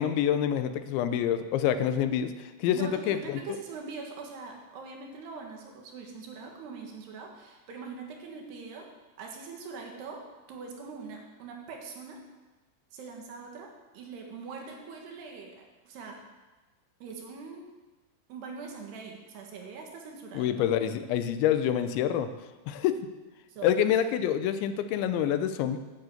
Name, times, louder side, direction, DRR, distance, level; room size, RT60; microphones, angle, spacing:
voice 1, 0.0-3.4 20.3-22.3 22.7-23.0 23.6-25.8, left 10 dB, 90° left, 10 dB, 3.1 m, -27 dB
voice 2, 2.7-8.9 9.2-10.2 10.5-12.2 12.9-16.2 17.0-17.7 18.3-20.7 23.5-23.7, right 4 dB, 65° right, 1 dB, 3.6 m, -42 dB
10.5 x 10.0 x 7.9 m, 1.2 s
omnidirectional pair, 5.2 m